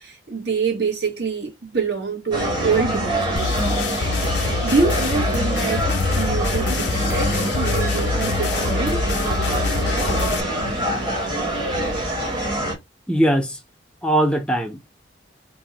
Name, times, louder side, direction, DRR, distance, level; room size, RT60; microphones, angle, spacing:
voice 1, 0.0-3.8 4.6-5.9 6.2-9.0, right 4 dB, 65° right, 1.1 m, -25 dB
sound 1, 2.3-12.7, equal, 25° right, 0.9 m, -24 dB
sound 2, 3.4-10.4, left 4 dB, 70° left, 0.5 m, -25 dB
voice 2, 13.1-13.6 14.0-14.8, right 1 dB, 5° left, 0.4 m, -20 dB
2.6 x 2.0 x 3.8 m
head